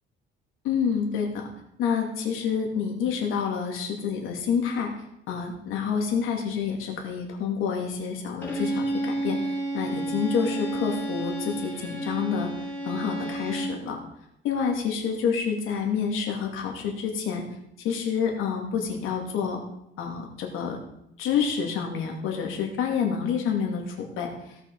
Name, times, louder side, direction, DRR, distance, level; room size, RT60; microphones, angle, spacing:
voice 1, 0.6-1.5 1.8-4.9 5.3-12.5 12.8-14.0 14.4-17.4 17.8-19.6 20.0-20.8 21.2-24.3, left 6 dB, 90° left, 1 dB, 2.7 m, -28 dB
Bowed string instrument, 8.4-13.9, right 2 dB, 10° left, 3.4 m, -31 dB
16.5 x 5.9 x 5.6 m, 0.80 s
cardioid pair, 160°, 21 cm